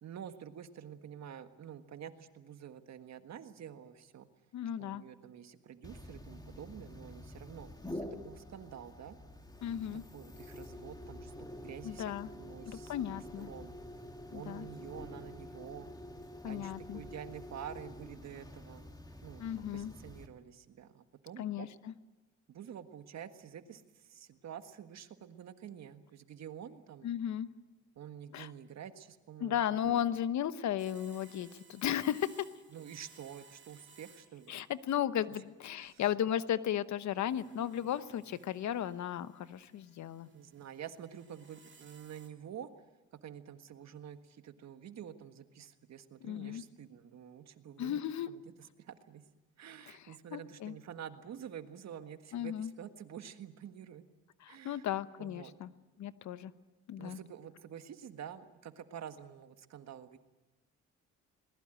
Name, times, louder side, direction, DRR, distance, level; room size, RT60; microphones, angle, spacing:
voice 1, 0.0-4.3 4.8-9.2 10.1-13.8 14.3-15.9 16.5-18.8 19.2-19.4 19.7-21.7 22.5-27.1 27.9-29.6 29.8-30.0 32.7-34.5 35.9-36.0 40.3-42.7 43.2-48.0 48.3-49.2 49.6-54.0 54.5-54.8 55.2-55.5 57.0-60.2, right 9 dB, 60° right, 9 dB, 1.6 m, -48 dB
voice 2, 4.5-5.0 9.6-10.0 11.8-12.3 12.7-13.5 14.3-14.7 16.4-17.0 19.4-19.9 21.4-21.9 27.0-27.5 28.3-28.5 29.4-32.5 34.5-40.3 46.2-46.6 47.8-48.3 49.9-50.0 50.3-50.7 52.3-52.7 54.4-55.7 56.0-56.5 56.9-57.2, left 10 dB, 70° left, 14 dB, 1.0 m, -35 dB
sound 1, 5.8-20.3, left 1 dB, 15° left, 2.3 m, -48 dB
sound 2, 30.8-35.1 35.7-36.2 37.1-42.3, right 5 dB, 40° right, 2.8 m, -61 dB
21.0 x 20.0 x 9.1 m, 1.1 s
cardioid pair, 90°, 30 cm